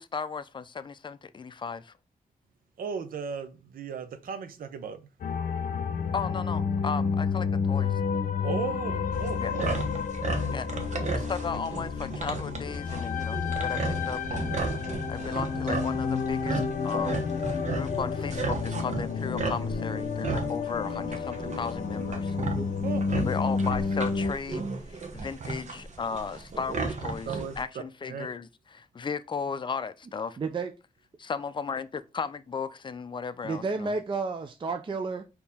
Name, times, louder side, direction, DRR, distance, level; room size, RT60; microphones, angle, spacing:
voice 1, 0.0-1.9 6.1-7.9 9.4-9.5 10.5-10.7 11.1-14.5 15.1-22.4 23.2-30.4 31.2-33.9, left 5 dB, 35° left, 0.4 m, -35 dB
voice 2, 2.8-5.0 8.4-9.7 11.0-11.1 22.8-23.0 27.3-27.5 28.1-28.3, right 6 dB, 90° right, 0.6 m, -36 dB
sound 1, 5.2-24.3, left 5 dB, 70° left, 0.7 m, -30 dB
sound 2, 9.1-27.6, right 3 dB, 55° right, 1.0 m, -35 dB
voice 3, 30.4-30.7 33.4-35.2, right 4 dB, 35° right, 0.4 m, -31 dB
4.3 x 2.8 x 3.5 m
wide cardioid pair, 95°, 14 cm